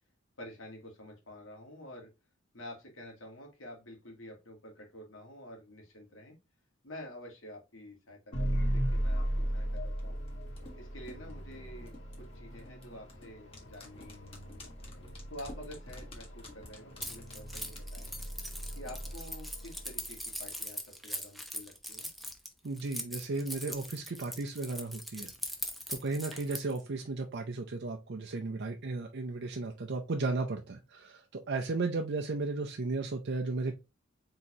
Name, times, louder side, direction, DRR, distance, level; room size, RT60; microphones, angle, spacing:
voice 1, 0.4-2.1 2.5-6.4 6.8-9.3 9.5-10.2 10.8-14.7 15.3-18.1 18.8-22.1, left 1 dB, 85° left, 0 dB, 1.8 m, -49 dB
sound 1, 8.3-20.5, equal, 65° left, 1.5 m, -37 dB
sound 2, 9.7-19.1 19.4-19.5, left 2 dB, 30° left, 1.5 m, -52 dB
Keys jangling, 17.0-26.8, equal, ahead, 0.8 m, -41 dB
voice 2, 22.6-25.3 25.9-33.7, right 3 dB, 60° right, 4 dB, 0.6 m, -35 dB
4.3 x 3.8 x 2.9 m, 0.26 s
head